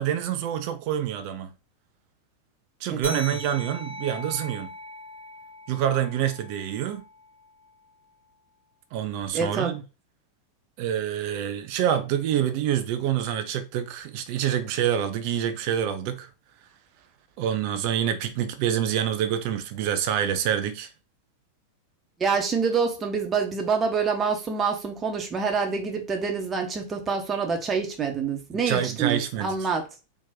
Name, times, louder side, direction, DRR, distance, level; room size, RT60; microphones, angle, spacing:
voice 1, 0.0-1.5 2.8-4.7 5.7-7.0 8.9-9.8 10.8-16.3 17.4-20.9 28.5-29.6, right 10 dB, 45° right, 0.6 m, -27 dB
voice 2, 2.9-3.3 9.3-9.8 22.2-29.9, right 5 dB, 20° right, 1.0 m, -26 dB
sound 1, 3.0-7.9, left 1 dB, 85° right, 1.0 m, -40 dB
4.0 x 2.4 x 3.8 m
figure-of-eight pair, 90°, 0 cm